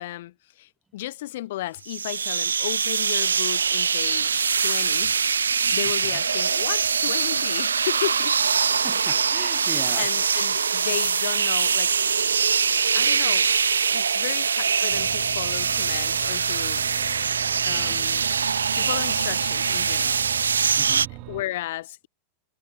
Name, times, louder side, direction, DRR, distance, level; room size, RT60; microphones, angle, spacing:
voice 1, 0.0-5.1 5.7-8.3 10.0-11.9 12.9-13.5 13.9-16.8 17.5-18.2 18.7-20.5 21.3-22.1, left 15 dB, 55° left, 1.2 m, -34 dB
sound 1, 1.9-21.1, right 6 dB, 70° right, 0.8 m, -23 dB
voice 2, 8.8-10.1 17.7-18.0 20.8-21.1, right 3 dB, 10° right, 4.2 m, -39 dB
sound 2, 14.9-21.4, right 27 dB, 40° right, 1.1 m, -40 dB
figure-of-eight pair, 90°, 0 cm